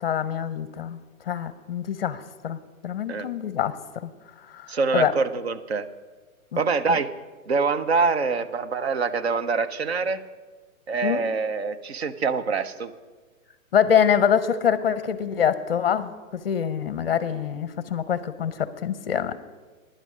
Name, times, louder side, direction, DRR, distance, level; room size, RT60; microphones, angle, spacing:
voice 1, 0.0-1.0 1.3-3.8 4.0-4.1 4.5-4.7 4.9-5.1 6.5-6.6 6.9-7.0 11.0-11.2 13.7-19.4, left 8 dB, 45° left, 14 dB, 0.7 m, -25 dB
voice 2, 4.7-5.9 6.6-7.1 7.5-10.2 10.9-12.9, right 4 dB, 50° right, 12 dB, 0.6 m, -25 dB
11.0 x 10.0 x 5.4 m, 1.4 s
hypercardioid pair, 165°, 43 cm